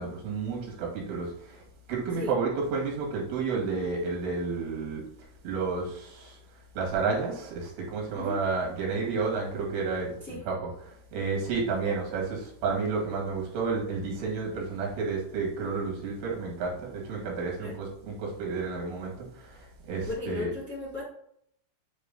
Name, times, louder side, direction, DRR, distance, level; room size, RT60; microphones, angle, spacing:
voice 1, 0.0-1.6 1.9-5.0 5.4-6.4 6.8-20.5, right 4 dB, 80° right, -1 dB, 4.5 m, -31 dB
voice 2, 20.0-21.0, left 3 dB, 50° left, -9 dB, 0.9 m, -35 dB
9.8 x 3.3 x 3.8 m, 0.70 s
omnidirectional pair, 5.5 m